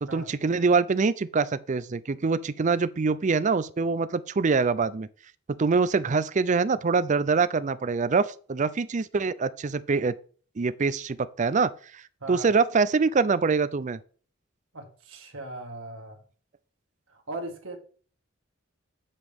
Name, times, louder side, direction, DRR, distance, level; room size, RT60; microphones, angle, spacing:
voice 1, 0.0-5.1 5.6-10.1 10.6-12.0 12.3-14.0, right 4 dB, 40° right, 0.4 m, -24 dB
voice 2, 14.7-16.2 17.1-17.8, right 2 dB, 80° right, 1.8 m, -38 dB
8.1 x 7.7 x 3.6 m
head